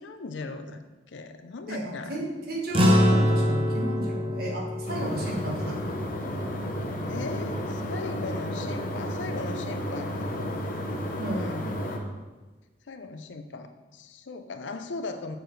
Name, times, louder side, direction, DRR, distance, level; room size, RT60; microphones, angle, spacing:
voice 1, 0.0-2.3 7.1-10.5 11.3-11.7 12.9-15.4, left 3 dB, 75° left, 8 dB, 0.5 m, -38 dB
voice 2, 1.7-6.0 11.2-11.7, right 1 dB, 55° right, -2 dB, 1.4 m, -33 dB
sound 1, 2.7-7.4, equal, 30° right, 0.8 m, -25 dB
sound 2, 4.9-12.0, equal, 45° left, 0.9 m, -32 dB
6.8 x 6.0 x 3.2 m, 1.2 s
head